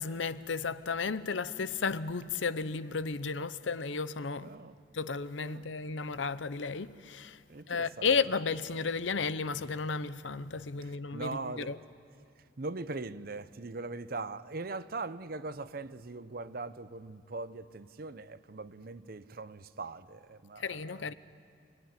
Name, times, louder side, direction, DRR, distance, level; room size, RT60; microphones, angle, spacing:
voice 1, 0.0-4.5 4.9-7.4 7.7-11.8 20.6-21.1, left 4 dB, 85° left, 0.8 m, -33 dB
voice 2, 4.4-4.8 5.4-5.7 7.5-8.1 10.8-11.8 12.6-20.6, right 3 dB, 50° right, 0.7 m, -41 dB
28.0 x 19.5 x 9.6 m
head